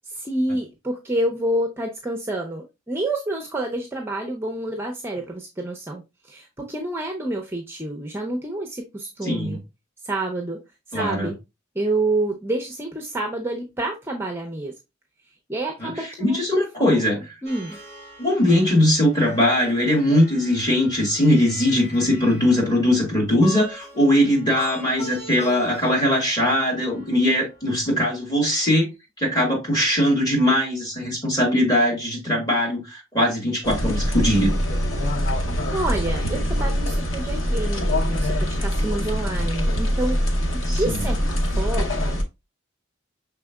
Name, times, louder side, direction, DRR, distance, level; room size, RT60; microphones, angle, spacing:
voice 1, 0.0-9.6 10.0-10.6 10.9-11.4 11.7-14.7 15.5-16.4 16.8-17.0 17.4-17.8 35.7-40.2 40.7-42.2, right 1 dB, 10° right, 0.5 m, -28 dB
voice 2, 9.2-9.6 10.9-11.3 15.8-17.2 18.2-28.9 29.2-34.5 40.6-41.0, left 1 dB, 20° left, 1.7 m, -20 dB
Plucked string instrument, 17.4-27.8, left 1 dB, 40° left, 2.6 m, -41 dB
sound 1, 33.6-42.2, equal, 85° left, 0.9 m, -23 dB
6.0 x 3.5 x 2.2 m
head